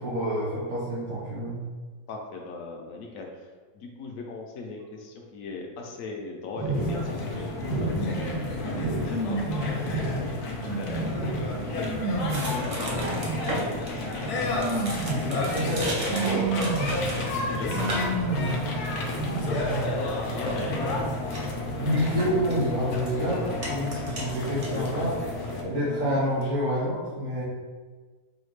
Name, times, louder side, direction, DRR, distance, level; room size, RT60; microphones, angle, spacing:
voice 1, 0.0-1.6 15.1-16.4 21.8-23.4 23.6-25.1 25.6-27.4, equal, 60° right, -11 dB, 1.7 m, -28 dB
voice 2, 2.1-7.2 7.8-8.6 9.3-10.3 10.6-11.9 12.4-12.9 17.2-17.7 18.3-20.9 22.9-23.2 24.8-25.1, left 3 dB, 70° left, 1 dB, 1.0 m, -39 dB
sound 1, 6.6-20.1 20.5-22.4 22.6-22.7, right 2 dB, 80° right, 1.5 m, -31 dB
sound 2, 6.7-25.6, left 2 dB, 90° left, 1.2 m, -32 dB
sound 3, 12.2-26.4, equal, 45° right, 0.4 m, -37 dB
4.9 x 2.3 x 3.2 m, 1.4 s
omnidirectional pair, 1.6 m